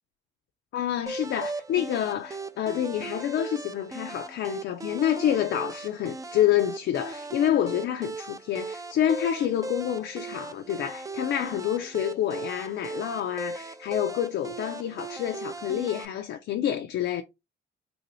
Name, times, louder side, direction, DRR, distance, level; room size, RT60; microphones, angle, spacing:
voice 1, 0.7-17.2, left 11 dB, 70° left, 0.4 m, -28 dB
sound 1, 1.1-16.1, right 3 dB, 15° right, 0.4 m, -38 dB
3.0 x 2.6 x 2.9 m
cardioid pair, 90°, 20 cm